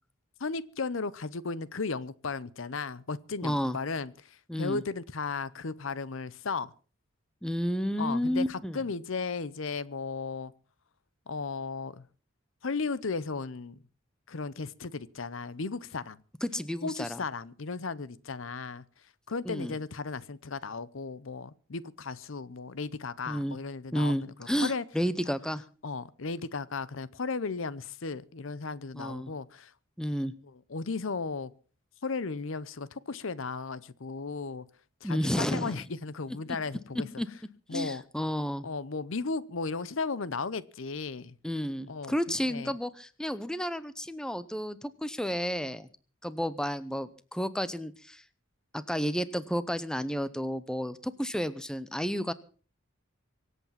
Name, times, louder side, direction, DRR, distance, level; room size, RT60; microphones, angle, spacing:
voice 1, 0.4-6.7 8.0-10.5 11.3-12.1 12.6-13.8 14.3-16.2 16.8-18.8 19.3-24.8 25.8-29.7 30.5-31.5 32.0-34.7 35.0-37.1 37.7-38.0 38.6-41.3 41.9-42.7, left 4 dB, 65° left, 0.7 m, -35 dB
voice 2, 3.4-3.8 4.5-4.8 7.4-8.8 16.4-17.2 19.5-19.7 23.3-23.6 23.9-25.6 28.9-29.3 30.0-30.3 35.0-35.8 37.2-37.3 37.7-38.7 41.4-45.9 46.2-48.2 48.7-52.3, equal, 5° left, 0.7 m, -31 dB
24.5 x 8.3 x 5.8 m
head